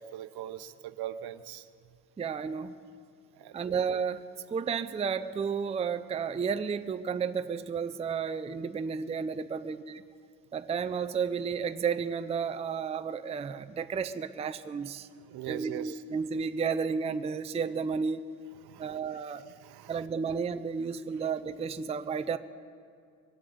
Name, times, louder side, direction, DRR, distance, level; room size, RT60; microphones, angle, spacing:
voice 1, 0.0-1.9 3.3-3.8 15.1-16.0 18.6-20.1, right 11 dB, 70° right, 12 dB, 0.8 m, -42 dB
voice 2, 2.2-2.8 3.5-10.0 10.5-15.1 15.5-18.2 18.8-19.4 19.9-22.4, right 6 dB, 15° right, 9 dB, 0.4 m, -32 dB
23.5 x 7.9 x 7.8 m, 2.2 s
cardioid pair, 115°, 39 cm